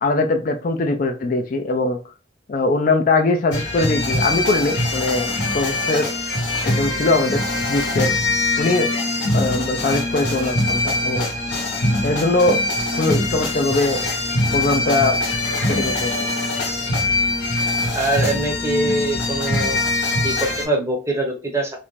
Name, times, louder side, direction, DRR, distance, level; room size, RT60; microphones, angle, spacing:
voice 1, 0.0-2.0 2.5-6.1 6.6-8.1 8.6-8.9 9.3-11.3 12.0-12.6 12.9-14.0 14.5-15.2 15.7-16.3, left 2 dB, 45° left, 5 dB, 0.4 m, -21 dB
sound 1, 3.5-20.7, left 2 dB, 70° left, 0.8 m, -23 dB
voice 2, 17.9-19.8 20.2-21.8, right 2 dB, 15° right, 0 dB, 0.7 m, -23 dB
2.5 x 2.1 x 3.1 m, 0.32 s
head